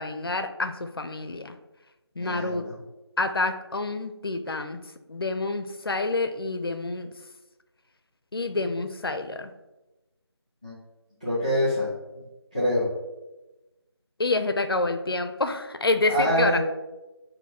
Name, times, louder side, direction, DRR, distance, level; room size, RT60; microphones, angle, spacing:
voice 1, 0.0-1.5 2.2-2.7 3.2-4.8 5.1-7.1 8.3-9.5 14.2-16.6, left 3 dB, 60° left, 8 dB, 0.4 m, -27 dB
voice 2, 2.2-2.7 10.6-10.7 11.2-11.9 12.5-12.9 16.1-16.6, equal, 15° right, -11 dB, 0.7 m, -25 dB
4.8 x 2.6 x 4.2 m, 1.0 s
figure-of-eight pair, 175°, 14 cm